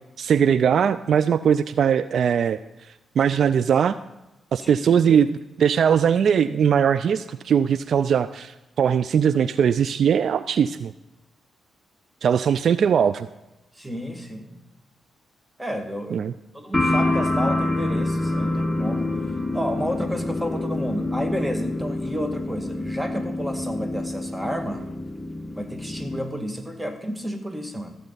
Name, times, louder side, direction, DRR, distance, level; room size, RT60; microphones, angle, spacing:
voice 1, 0.2-2.6 3.2-4.0 4.5-10.9 12.2-13.3 16.1-16.3, right 8 dB, 65° right, 14 dB, 0.3 m, -20 dB
voice 2, 13.8-14.6 15.6-16.2 16.5-19.1 19.5-24.9 25.5-27.9, equal, 10° right, 6 dB, 1.9 m, -31 dB
sound 1, 16.7-26.2, left 2 dB, 15° left, 1.2 m, -26 dB
14.5 x 8.0 x 4.0 m, 0.96 s
hypercardioid pair, 40°, 0 cm